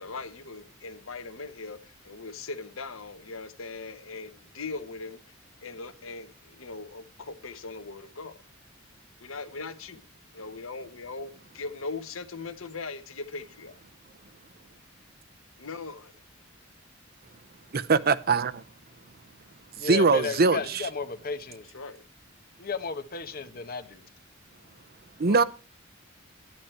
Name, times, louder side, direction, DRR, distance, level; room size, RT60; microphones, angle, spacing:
voice 1, 0.0-5.2 5.6-8.4 9.2-10.0 10.3-13.8 15.6-16.1 21.7-22.0 25.3-25.4, left 3 dB, 85° left, 1.2 m, -39 dB
voice 2, 17.7-18.6 19.8-20.8 25.2-25.4, right 4 dB, 50° right, 0.7 m, -22 dB
voice 3, 19.8-21.8 22.6-24.1, left 4 dB, 50° left, 1.1 m, -34 dB
10.5 x 10.5 x 4.5 m
head